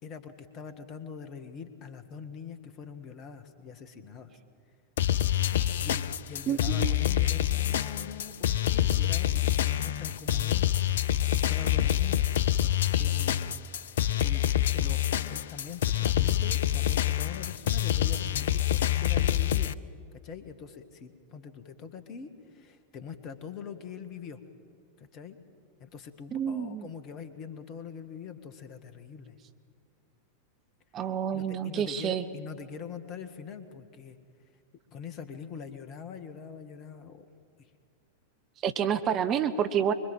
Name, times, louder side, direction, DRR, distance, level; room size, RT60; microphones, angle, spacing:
voice 1, 0.0-4.4 5.8-11.1 11.5-12.3 12.6-12.7 13.0-15.0 15.3-19.8 20.1-24.4 25.0-25.4 25.8-29.4 31.3-34.2 34.9-37.3 37.6-37.7, left 6 dB, 35° left, 10 dB, 1.9 m, -43 dB
sound 1, 5.0-19.7, left 12 dB, 60° left, 0.6 m, -26 dB
voice 2, 6.5-7.0 26.3-26.9 30.9-32.3 38.6-39.9, right 8 dB, 30° right, 9 dB, 1.1 m, -29 dB
25.0 x 24.0 x 7.5 m, 2.3 s
figure-of-eight pair, 90°, 0 cm